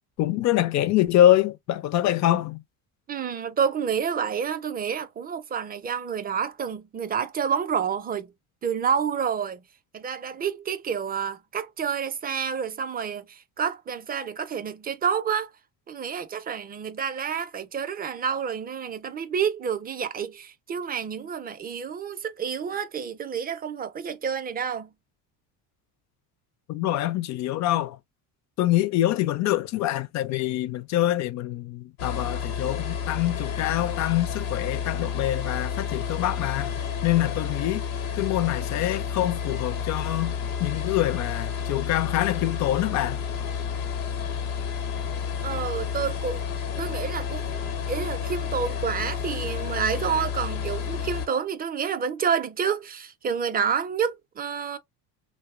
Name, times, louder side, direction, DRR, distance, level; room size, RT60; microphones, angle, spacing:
voice 1, 0.2-2.6 26.7-28.0 28.6-36.8 37.0-37.8 38.2-43.2, left 13 dB, 45° left, 0.4 m, -25 dB
voice 2, 3.1-8.3 8.6-9.6 9.9-15.5 15.9-24.9 45.4-46.4 46.8-47.6 47.9-54.8, right 7 dB, 25° right, 0.4 m, -29 dB
sound 1, 32.0-51.3, left 7 dB, 75° left, 1.0 m, -31 dB
2.8 x 2.1 x 2.4 m
supercardioid pair, 100°, 42 cm